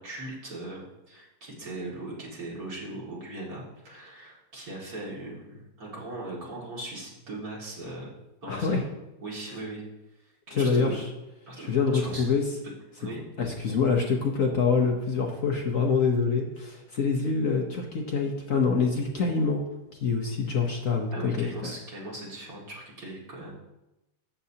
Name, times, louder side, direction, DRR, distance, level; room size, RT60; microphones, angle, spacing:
voice 1, 0.0-8.1 8.4-8.9 9.2-9.8 10.2-11.0 11.5-12.2 13.0-13.5 21.1-23.5, right 2 dB, 55° right, -4 dB, 2.7 m, -39 dB
voice 2, 8.5-8.8 10.5-11.1 11.6-12.4 13.4-19.6 19.9-21.7, left 5 dB, 55° left, 1 dB, 1.2 m, -26 dB
13.0 x 8.0 x 2.8 m, 0.96 s
omnidirectional pair, 1.9 m